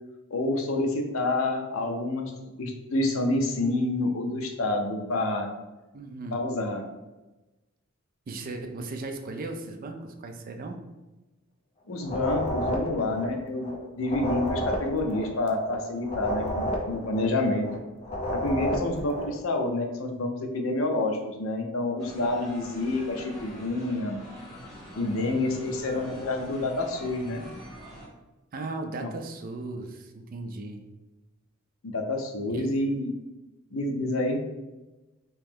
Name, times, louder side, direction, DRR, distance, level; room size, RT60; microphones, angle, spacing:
voice 1, 0.3-2.3 2.6-5.5 6.3-6.8 11.9-13.7 14.0-17.7 18.3-24.2 25.0-27.5 29.0-29.1 31.8-33.1 33.7-34.4, left 2 dB, 70° left, 3 dB, 0.6 m, -28 dB
voice 2, 5.9-6.4 8.3-10.8 28.5-30.8 32.5-32.7, right 2 dB, 40° right, 5 dB, 0.4 m, -36 dB
sound 1, 12.0-13.8 14.0-17.8 18.0-19.4, equal, 25° left, 0.5 m, -31 dB
sound 2, 22.0-28.1, equal, ahead, 1.1 m, -44 dB
3.1 x 2.9 x 3.5 m, 1.1 s
head